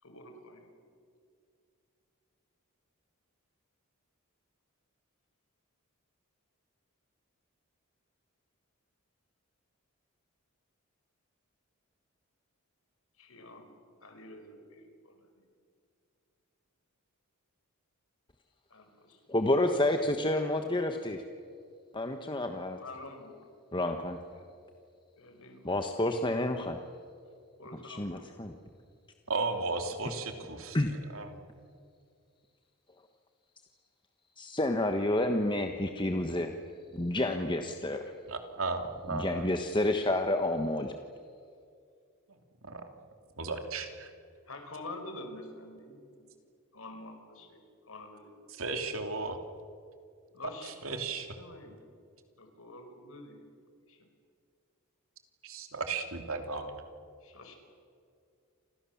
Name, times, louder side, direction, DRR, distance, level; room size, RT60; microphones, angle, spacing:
voice 1, 0.0-0.7 13.2-13.7 14.0-15.5 18.7-19.2 22.7-23.6 24.0-24.5 25.2-25.8 27.6-28.4 44.5-46.3 46.7-48.5 50.3-51.8 52.4-53.5 53.9-54.1 57.2-57.6, left 2 dB, 65° left, 5 dB, 5.2 m, -48 dB
voice 2, 19.3-21.2 21.9-22.8 23.7-24.2 25.6-26.8 27.8-28.5 30.7-30.9 34.4-36.5 36.9-38.0 39.1-40.9, left 1 dB, 20° left, 5 dB, 1.3 m, -29 dB
voice 3, 29.3-30.8 31.1-31.3 38.3-39.5 42.6-42.8 43.4-44.1 48.5-49.4 50.6-51.3 55.4-56.8, right 3 dB, 70° right, 5 dB, 3.0 m, -35 dB
29.0 x 27.0 x 7.3 m, 2.3 s
head